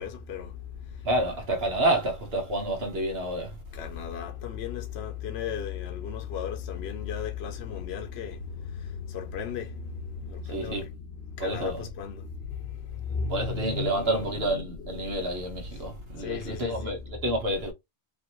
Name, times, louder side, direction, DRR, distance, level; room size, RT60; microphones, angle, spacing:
voice 1, 0.0-1.1 3.7-15.4 15.7-16.9, left 7 dB, 65° left, 1.0 m, -36 dB
voice 2, 1.0-3.6 10.4-10.9 11.4-11.8 13.3-17.7, right 1 dB, 60° right, 1.5 m, -29 dB
5.1 x 2.8 x 3.0 m
omnidirectional pair, 1.2 m